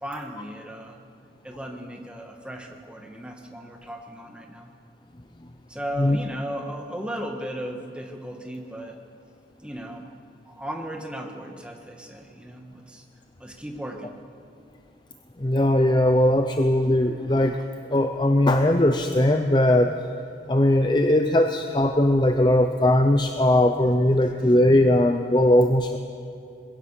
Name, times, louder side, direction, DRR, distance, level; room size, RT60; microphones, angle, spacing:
voice 1, 0.0-1.0 1.4-4.7 5.7-9.0 9.6-10.1 10.4-13.0 13.4-14.1, equal, 5° right, 2 dB, 1.5 m, -36 dB
voice 2, 15.4-17.6 17.9-19.9 20.5-26.0, left 1 dB, 25° left, 6 dB, 0.6 m, -19 dB
21.5 x 16.5 x 7.4 m, 2.7 s
head